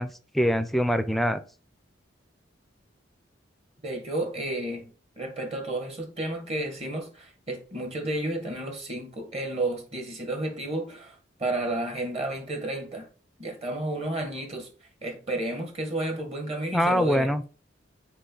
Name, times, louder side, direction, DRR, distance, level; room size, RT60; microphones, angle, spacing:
voice 1, 0.0-1.4 16.7-17.4, equal, ahead, 0.4 m, -24 dB
voice 2, 3.8-13.1 13.4-14.7 15.0-17.3, right 2 dB, 35° right, 1.6 m, -32 dB
6.5 x 4.6 x 3.9 m
head